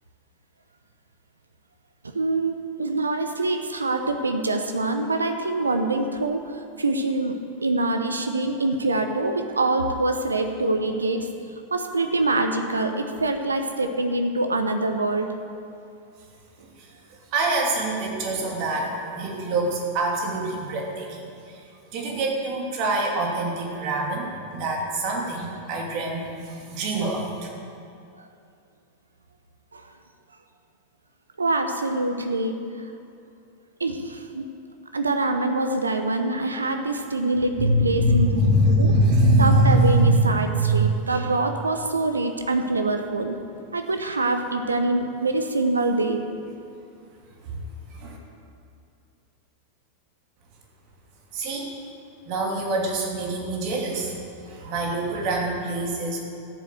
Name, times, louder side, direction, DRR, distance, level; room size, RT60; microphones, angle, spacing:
voice 1, 2.1-6.4 6.8-7.3 7.6-11.3 11.7-15.3 29.7-29.8 31.4-32.6 33.8-34.4 34.9-38.3 38.8-38.9 39.4-43.4 43.7-46.2, right 2 dB, 75° right, 6 dB, 0.8 m, -25 dB
voice 2, 17.3-21.6 21.9-27.3 37.6-41.0 47.5-47.6 47.9-48.2 51.3-51.7 52.3-54.1 54.4-56.2, right 1 dB, 45° right, -1 dB, 2.8 m, -24 dB
13.5 x 7.7 x 8.0 m, 2.5 s
figure-of-eight pair, 90°, 0 cm